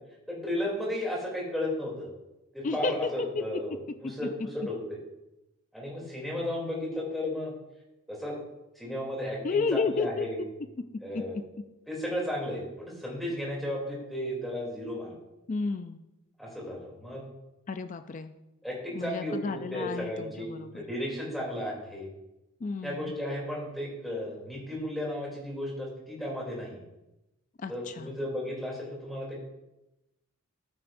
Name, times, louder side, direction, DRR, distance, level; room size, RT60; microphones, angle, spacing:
voice 1, 0.3-2.1 2.5-5.0 5.7-7.5 8.1-8.3 8.7-10.4 11.0-11.4 11.9-15.1 16.4-17.2 18.6-22.1 22.8-26.8 27.7-29.4, left 1 dB, ahead, -4 dB, 2.9 m, -34 dB
voice 2, 2.6-3.4 4.4-4.5 9.4-10.3 10.9-11.4 15.5-16.1 17.7-18.3 18.9-20.8 22.6-23.2 27.6-28.2, left 4 dB, 35° left, 9 dB, 0.3 m, -32 dB
12.0 x 9.4 x 2.6 m, 0.95 s
head